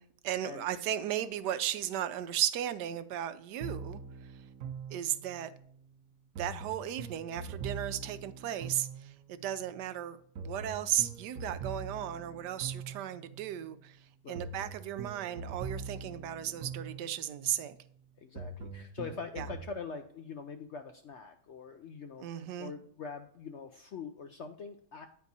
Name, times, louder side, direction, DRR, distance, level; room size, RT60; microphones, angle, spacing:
voice 1, 0.0-4.4 4.9-5.5 6.4-17.8 19.4-19.5 22.2-22.7, right 11 dB, 85° right, 1.2 m, -35 dB
sound 1, 3.6-5.5 6.4-9.4 10.4-13.4 14.4-17.4 18.4-19.7, right 5 dB, 60° right, 1.1 m, -42 dB
voice 2, 18.2-25.1, left 5 dB, 65° left, 0.7 m, -43 dB
9.4 x 4.4 x 4.0 m
omnidirectional pair, 1.8 m